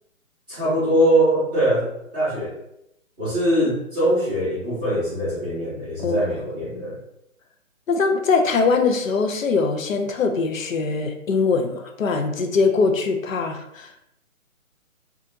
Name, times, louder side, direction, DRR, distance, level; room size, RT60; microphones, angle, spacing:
voice 1, 0.5-2.5 3.2-7.0, right 1 dB, 5° right, -19 dB, 0.6 m, -22 dB
voice 2, 6.0-6.3 7.9-14.0, left 4 dB, 70° left, 5 dB, 0.6 m, -22 dB
2.7 x 2.4 x 2.6 m, 0.81 s
hypercardioid pair, 155°, 41 cm